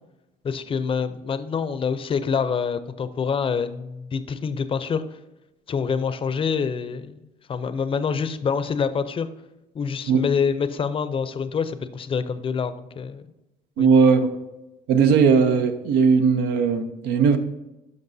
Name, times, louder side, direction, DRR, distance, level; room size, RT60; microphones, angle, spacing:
voice 1, 0.4-5.0 5.7-7.2 7.5-9.3 9.7-13.3 13.8-13.9, left 6 dB, 30° left, 0.5 m, -26 dB
voice 2, 13.8-14.4 14.9-17.4, right 5 dB, 90° right, 0.8 m, -18 dB
12.0 x 5.2 x 2.7 m
cardioid pair, 110°, 17 cm